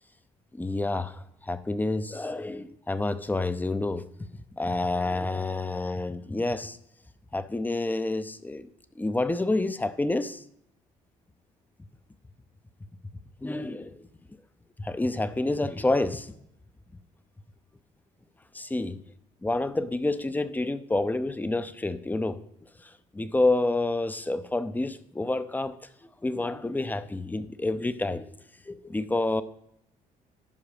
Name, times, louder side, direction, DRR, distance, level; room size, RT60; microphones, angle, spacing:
voice 1, 0.5-4.1 4.5-6.8 7.3-8.7 9.0-10.4 13.4-14.1 14.8-16.3 18.5-19.0 19.4-22.4 22.8-25.8 26.2-28.4 28.7-29.4, left 2 dB, 10° left, 0.6 m, -28 dB
10.5 x 5.1 x 5.1 m
cardioid pair, 90°, 15 cm